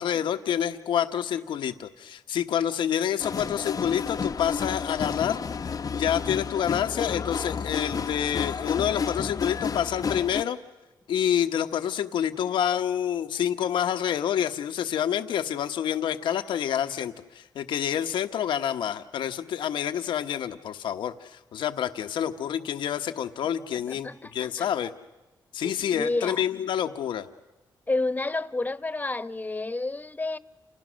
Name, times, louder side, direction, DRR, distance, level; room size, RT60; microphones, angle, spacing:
voice 1, 0.0-5.4 5.9-10.6 11.1-24.9 25.5-27.3, left 9 dB, 90° left, 1.1 m, -28 dB
sound 1, 3.2-10.4, left 6 dB, 50° left, 0.8 m, -31 dB
voice 2, 23.7-24.7 25.6-26.4 27.9-30.4, left 2 dB, 20° left, 1.1 m, -30 dB
29.5 x 28.5 x 6.3 m
cardioid pair, 80°, 8 cm